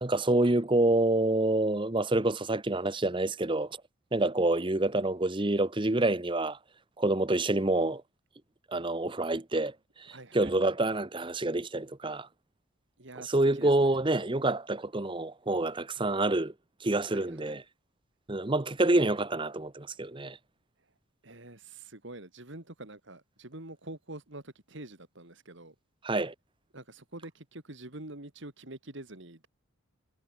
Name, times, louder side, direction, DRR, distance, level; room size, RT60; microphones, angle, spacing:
voice 1, 0.0-3.8 4.1-6.6 7.0-8.0 8.7-12.3 13.2-16.5 16.8-17.6 18.3-20.4 26.0-26.3, right 2 dB, 25° right, 0.9 m, -27 dB
voice 2, 10.1-10.5 13.0-13.9 17.1-17.6 21.2-25.7 26.7-29.5, right 2 dB, 55° right, 2.5 m, -46 dB
head